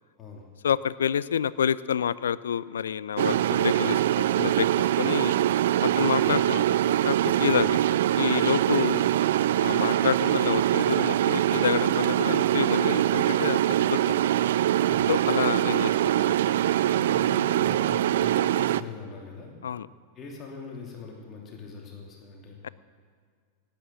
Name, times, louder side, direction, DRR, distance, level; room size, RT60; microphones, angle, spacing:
voice 1, 0.6-5.3 5.8-7.8 8.2-9.0 9.6-13.6 13.9-14.3 15.1-16.4 19.6-19.9 22.6-22.7, left 8 dB, 70° left, 19 dB, 0.4 m, -28 dB
sound 1, 3.2-18.8, right 12 dB, 60° right, 0.3 m, -23 dB
voice 2, 6.0-6.3 14.8-15.1 16.9-19.5 20.1-22.7, left 5 dB, 30° left, -1 dB, 2.8 m, -42 dB
18.0 x 9.2 x 7.4 m, 2.1 s
figure-of-eight pair, 90°, 0 cm